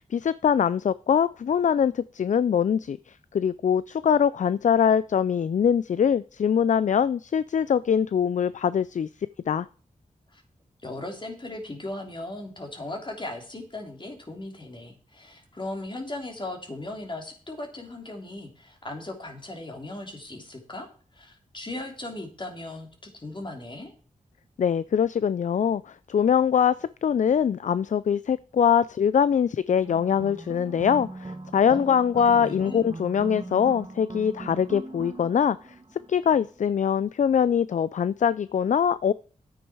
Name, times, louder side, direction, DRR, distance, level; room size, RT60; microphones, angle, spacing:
voice 1, 0.0-9.1 9.5-9.7 24.6-35.6 36.1-39.1, left 8 dB, 60° left, 17 dB, 0.4 m, -23 dB
voice 2, 10.8-20.9 21.1-22.9 23.1-23.9 31.7-31.9 32.2-32.9, left 2 dB, 35° left, 3 dB, 3.2 m, -37 dB
sound 1, 29.8-36.4, right 2 dB, 35° right, 1.6 m, -40 dB
10.5 x 8.7 x 4.7 m, 0.40 s
cardioid pair, 55°, 15 cm